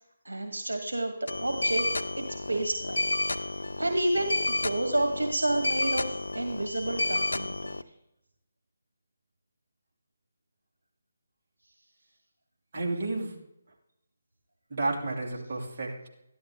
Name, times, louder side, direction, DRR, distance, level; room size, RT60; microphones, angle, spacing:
voice 1, 0.3-1.9 2.2-7.8, right 1 dB, 85° right, 4 dB, 1.8 m, -30 dB
sound 1, 1.3-7.8, left 2 dB, 80° left, 0.6 m, -31 dB
voice 2, 12.7-13.3 14.7-16.1, right 2 dB, 45° right, -2 dB, 2.8 m, -31 dB
13.5 x 11.5 x 3.7 m, 0.83 s
figure-of-eight pair, 150°, 0 cm